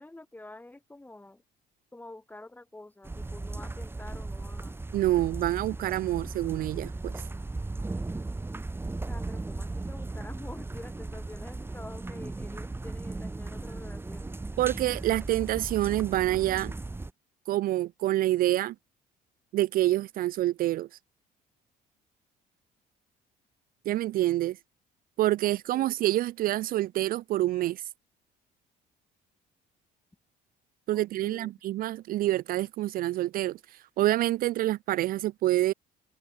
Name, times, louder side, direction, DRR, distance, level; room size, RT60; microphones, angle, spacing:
voice 1, 0.0-1.4 1.9-4.8 9.0-14.4 25.4-25.9 30.9-31.5, left 2 dB, 10° left, 3.6 m, -47 dB
sound 1, 3.0-17.1, right 2 dB, 15° right, 1.6 m, -37 dB
voice 2, 4.9-7.1 14.6-16.7 17.5-18.7 19.5-20.9 23.9-24.6 25.2-27.8 30.9-35.7, right 15 dB, 60° right, 0.4 m, -27 dB
cardioid pair, 110°, 17 cm